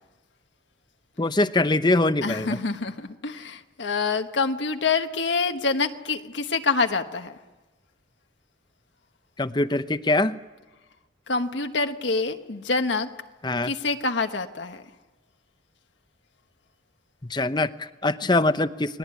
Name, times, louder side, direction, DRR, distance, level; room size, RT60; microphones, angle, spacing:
voice 1, 1.2-2.6 9.4-10.4 13.4-13.7 17.2-19.0, left 2 dB, 25° left, 12 dB, 0.8 m, -23 dB
voice 2, 2.2-7.4 11.3-13.1 13.6-14.8 18.2-18.3, left 4 dB, 70° left, 6 dB, 1.3 m, -26 dB
30.0 x 20.5 x 9.6 m, 1.2 s
head